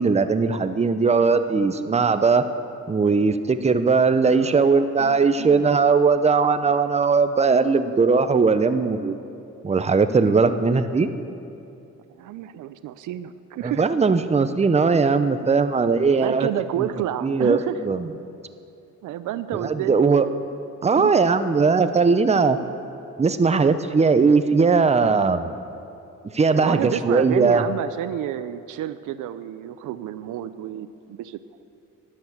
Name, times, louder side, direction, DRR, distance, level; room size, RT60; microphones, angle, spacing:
voice 1, 0.0-2.4 2.9-9.2 9.6-11.1 13.6-16.5 17.2-18.1 19.6-20.3 20.8-22.6 23.2-25.5 26.3-27.6, right 4 dB, 20° right, 10 dB, 0.8 m, -19 dB
voice 2, 4.3-5.6 10.3-10.6 11.0-11.1 12.1-13.9 16.1-17.8 19.0-20.1 20.8-21.1 22.5-22.6 26.5-31.4, right 12 dB, 80° right, 13 dB, 0.6 m, -30 dB
13.0 x 10.5 x 8.0 m, 2.7 s
cardioid pair, 90°, 30 cm